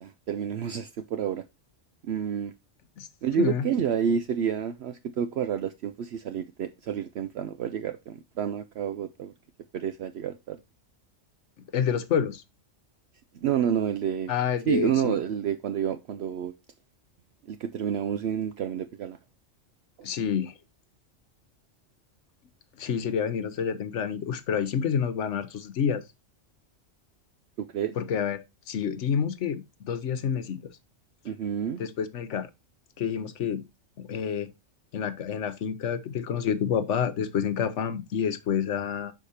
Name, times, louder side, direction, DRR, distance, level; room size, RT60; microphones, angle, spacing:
voice 1, 0.0-1.5 2.0-2.5 3.2-9.3 9.7-10.6 13.4-14.3 14.7-16.5 17.5-19.2 20.0-20.1 27.6-28.0 31.2-31.8, right 8 dB, 65° right, 0.8 m, -29 dB
voice 2, 3.4-3.7 11.7-12.4 14.3-15.2 20.0-20.5 22.8-26.0 28.0-30.7 31.8-32.5 33.0-33.6 34.0-34.5 34.9-39.1, left 7 dB, 70° left, 1.1 m, -28 dB
6.4 x 5.0 x 4.1 m
omnidirectional pair, 1.3 m